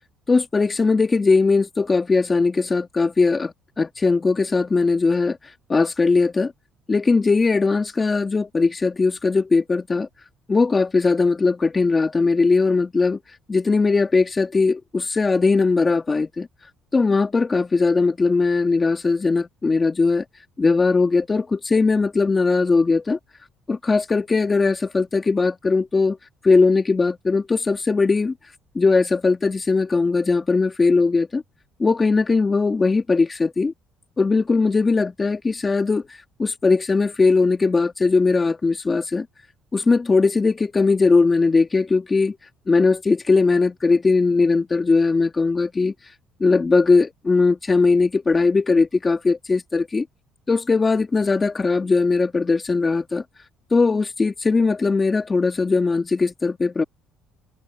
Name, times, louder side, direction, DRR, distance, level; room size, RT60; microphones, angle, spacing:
voice 1, 0.3-6.5 6.9-10.1 10.5-13.2 13.5-16.5 16.9-20.2 20.6-23.2 23.7-26.2 26.4-31.4 31.8-33.7 34.2-39.3 39.7-42.4 42.7-46.1 46.4-50.1 50.5-53.2 53.7-56.8, left 4 dB, 25° left, 2.0 m, -19 dB
supercardioid pair, 85°, 0 cm